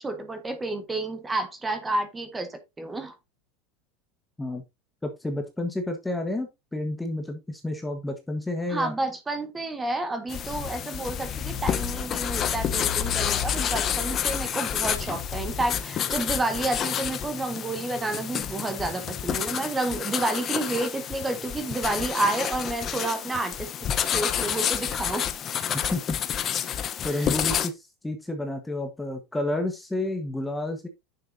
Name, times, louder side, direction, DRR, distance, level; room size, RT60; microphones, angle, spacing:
voice 1, 0.0-3.1 8.7-25.3 27.1-27.3, right 2 dB, 10° right, 1.7 m, -30 dB
voice 2, 5.0-8.9 25.9-26.2 27.0-30.9, left 2 dB, 5° left, 1.4 m, -30 dB
sound 1, 10.3-27.7, left 9 dB, 25° left, 1.0 m, -29 dB
10.0 x 6.6 x 2.8 m
supercardioid pair, 155°, 0 cm